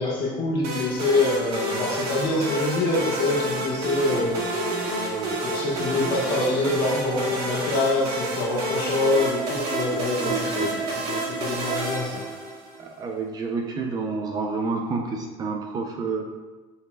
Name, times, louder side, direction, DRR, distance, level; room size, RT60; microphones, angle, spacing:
voice 1, 0.0-12.2, left 2 dB, 50° left, -4 dB, 1.8 m, -25 dB
sound 1, 0.6-12.8, right 2 dB, 65° right, 1.8 m, -29 dB
voice 2, 10.2-10.7 12.8-16.3, right 4 dB, 35° right, 3 dB, 0.6 m, -29 dB
10.5 x 4.1 x 2.3 m, 1.2 s
supercardioid pair, 120°, 11 cm